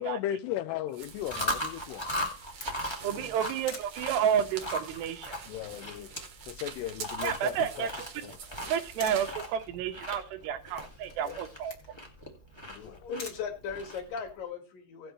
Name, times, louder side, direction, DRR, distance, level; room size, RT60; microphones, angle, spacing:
voice 1, 0.0-2.4 3.0-3.3 5.5-6.1 6.5-7.9 8.2-8.3 12.7-13.0, left 12 dB, 90° left, 2.8 m, -37 dB
sound 1, 0.9-9.4, right 7 dB, 65° right, 1.4 m, -46 dB
Chewing mastication, 1.1-14.3, left 1 dB, 20° left, 0.6 m, -39 dB
Camera, 1.8-14.3, left 4 dB, 40° left, 1.4 m, -51 dB
voice 2, 3.0-5.4 7.2-8.1 8.7-11.7, right 8 dB, 90° right, 3.3 m, -30 dB
voice 3, 12.8-15.1, left 6 dB, 60° left, 3.3 m, -38 dB
17.0 x 7.7 x 3.1 m
omnidirectional pair, 4.7 m